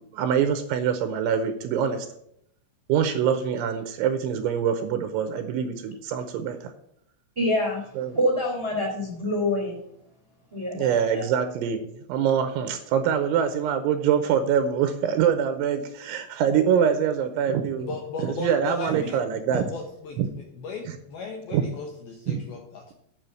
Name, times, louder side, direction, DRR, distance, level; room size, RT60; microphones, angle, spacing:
voice 1, 0.1-2.1 2.9-6.7 8.0-8.2 10.7-17.9 18.2-19.7 20.2-20.3 21.5-21.6 22.3-22.4, right 8 dB, 85° right, 8 dB, 3.0 m, -24 dB
voice 2, 7.3-9.8 10.5-11.2, left 1 dB, 10° right, -2 dB, 2.2 m, -26 dB
voice 3, 17.8-19.2 19.5-20.2 20.6-22.9, left 4 dB, 75° left, 2 dB, 2.4 m, -36 dB
9.1 x 6.4 x 8.2 m, 0.74 s
omnidirectional pair, 5.8 m